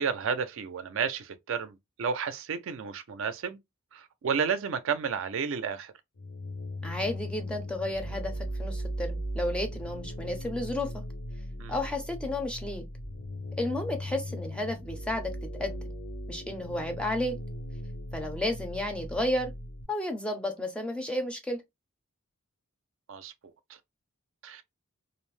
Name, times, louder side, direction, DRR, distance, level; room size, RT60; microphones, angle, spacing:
voice 1, 0.0-3.6 3.9-5.9 11.6-11.7 23.1-23.3 24.4-24.6, right 6 dB, 65° right, 0.4 m, -31 dB
sound 1, 6.2-19.8, equal, 70° left, 0.7 m, -38 dB
voice 2, 6.8-11.0 11.7-12.9 13.6-15.9 16.3-17.4 18.1-19.5 19.9-21.6, left 1 dB, 5° left, 0.4 m, -32 dB
2.5 x 2.0 x 3.1 m
head